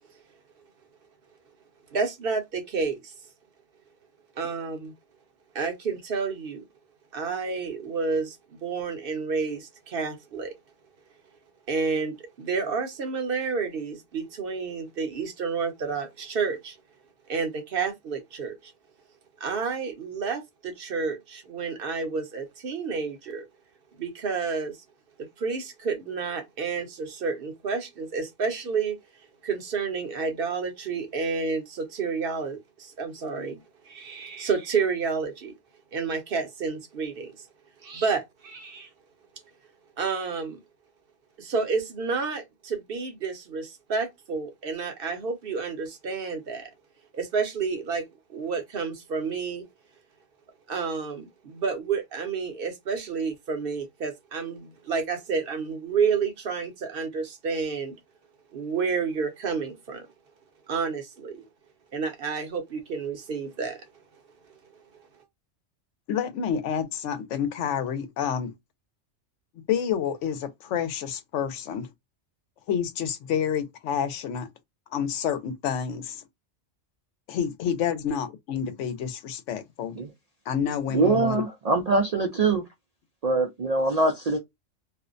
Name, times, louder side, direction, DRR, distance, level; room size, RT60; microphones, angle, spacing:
voice 1, 1.9-3.1 4.4-4.9 5.5-6.6 7.1-10.5 11.7-16.8 17.3-18.7 19.4-23.4 24.0-24.8 25.4-29.0 29.4-33.6 33.9-35.5 35.9-37.5 37.8-38.9 40.0-40.6 41.4-46.7 47.1-48.0 48.3-49.7 50.7-57.9 58.5-60.1 60.7-61.4 61.9-63.8, right 5 dB, 55° right, 0.8 m, -30 dB
voice 2, 66.1-68.5 69.7-71.9 72.7-74.5 74.9-76.2 77.3-79.9 80.5-81.4, left 8 dB, 75° left, 0.9 m, -29 dB
voice 3, 80.9-82.6 83.2-84.4, right 3 dB, 90° right, 0.3 m, -23 dB
2.5 x 2.1 x 2.4 m
omnidirectional pair, 1.3 m